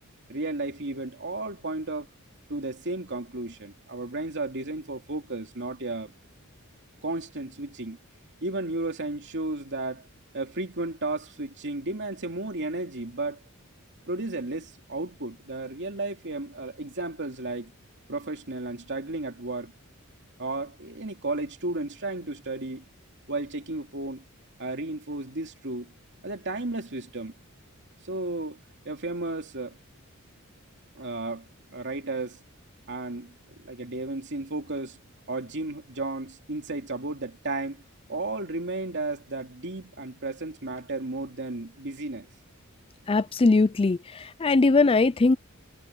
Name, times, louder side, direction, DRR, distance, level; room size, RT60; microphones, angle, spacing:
voice 1, 0.3-2.1 2.5-6.1 7.0-8.0 8.4-10.1 10.3-13.4 14.1-17.7 18.1-19.7 20.4-22.8 23.3-24.2 24.6-25.9 26.2-27.3 28.0-29.8 30.9-32.4 32.9-35.0 35.3-37.8 38.1-42.3, right 2 dB, 55° right, 2.7 m, -33 dB
voice 2, 43.1-45.4, left 3 dB, 25° left, 0.4 m, -21 dB
head